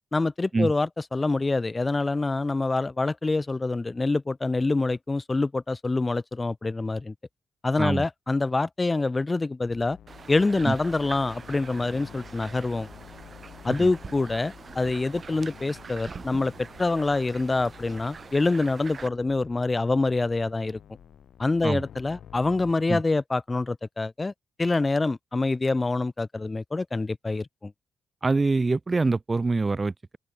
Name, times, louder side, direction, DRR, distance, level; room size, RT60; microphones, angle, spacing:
voice 1, 0.1-7.1 7.6-10.0 10.3-12.9 13.6-16.5 16.8-20.8 21.4-24.3 24.6-27.7, left 3 dB, 30° left, 0.8 m, -26 dB
sound 1, 9.6-22.7, left 9 dB, 80° left, 2.4 m, -49 dB
sound 2, 10.1-19.1, right 5 dB, 50° right, 2.0 m, -44 dB
voice 2, 28.2-30.2, right 3 dB, 35° right, 0.4 m, -25 dB
open air
supercardioid pair, 50°, 0 cm